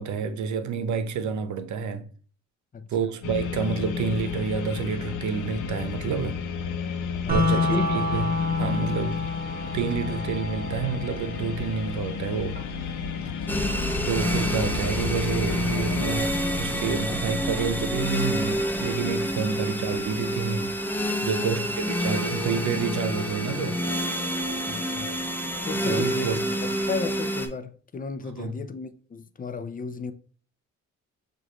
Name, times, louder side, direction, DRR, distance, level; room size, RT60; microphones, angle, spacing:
voice 1, 0.0-2.1 2.9-6.4 7.3-9.2 9.5-12.6 14.1-20.7 21.2-23.8 25.8-26.4 28.4-28.6, right 5 dB, 70° right, 0.8 m, -29 dB
voice 2, 2.7-3.2 7.2-7.8 13.2-13.7 24.7-25.2 25.7-26.3 26.6-30.1, left 4 dB, 30° left, 0.6 m, -34 dB
sound 1, 3.2-16.1, left 6 dB, 85° left, 0.7 m, -33 dB
sound 2, 7.3-17.3, left 3 dB, 30° right, 1.7 m, -31 dB
sound 3, 13.5-27.5, equal, 5° left, 1.0 m, -28 dB
6.4 x 2.5 x 3.0 m
cardioid pair, 90°, 30 cm